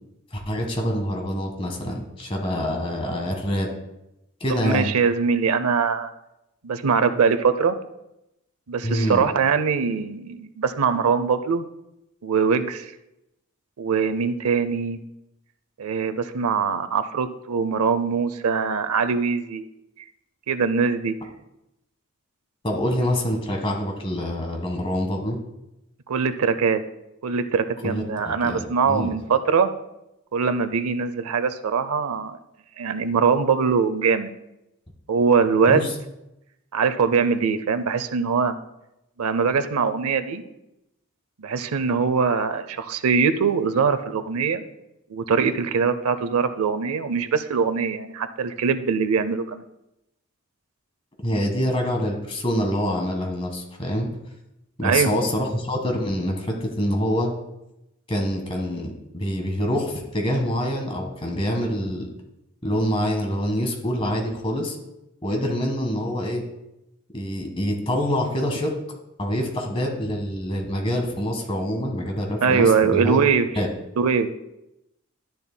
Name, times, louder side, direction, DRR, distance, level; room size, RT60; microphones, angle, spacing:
voice 1, 0.3-3.7 4.4-4.9 8.8-9.3 22.6-25.4 27.8-29.2 35.7-35.9 51.2-54.1 54.8-57.3 58.1-62.1 62.6-64.8 65.2-66.4 67.1-68.7 69.2-73.2 73.5-73.7, equal, 25° left, 2 dB, 1.5 m, -26 dB
voice 2, 4.5-6.1 6.6-7.8 8.7-11.6 12.2-12.9 13.8-15.0 15.8-19.6 20.5-21.1 26.1-26.8 27.2-29.7 30.3-32.4 32.8-34.3 35.1-35.8 36.7-38.5 39.2-40.4 41.4-44.6 45.1-49.6 54.8-55.1 72.4-73.5 74.0-74.4, right 5 dB, 85° right, 11 dB, 0.6 m, -22 dB
12.0 x 10.5 x 2.2 m, 0.89 s
head